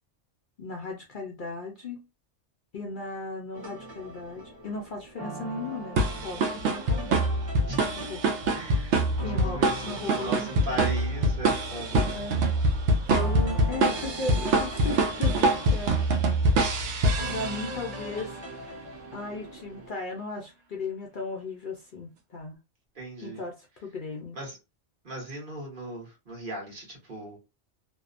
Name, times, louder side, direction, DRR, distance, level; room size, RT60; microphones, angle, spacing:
voice 1, 0.6-2.0 2.7-7.1 8.1-8.2 9.2-10.8 12.1-12.6 12.9-16.1 17.3-18.7 19.1-22.6 23.2-24.4, left 3 dB, 55° left, 0.6 m, -36 dB
sound 1, 3.5-19.9, right 1 dB, 20° right, 1.2 m, -41 dB
sound 2, 6.0-17.9, right 2 dB, 75° right, 0.9 m, -25 dB
voice 2, 8.5-12.1 22.9-23.4 24.3-24.6 25.0-27.4, right 1 dB, 45° right, 1.2 m, -38 dB
2.7 x 2.0 x 2.4 m
omnidirectional pair, 1.3 m